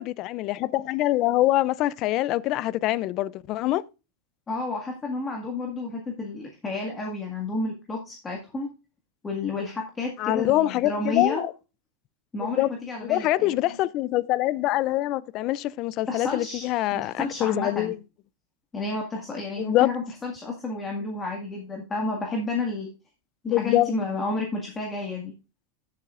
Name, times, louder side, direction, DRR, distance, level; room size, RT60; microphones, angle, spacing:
voice 1, 0.0-3.8 10.2-11.5 12.4-12.7 13.0-18.0 19.6-19.9 23.5-23.9, left 16 dB, 40° left, 0.4 m, -24 dB
voice 2, 4.5-8.7 9.2-11.4 12.3-13.6 16.1-17.9 18.7-22.9 23.4-25.3, left 3 dB, 15° left, 1.8 m, -31 dB
17.0 x 7.4 x 2.5 m
supercardioid pair, 155°, 0 cm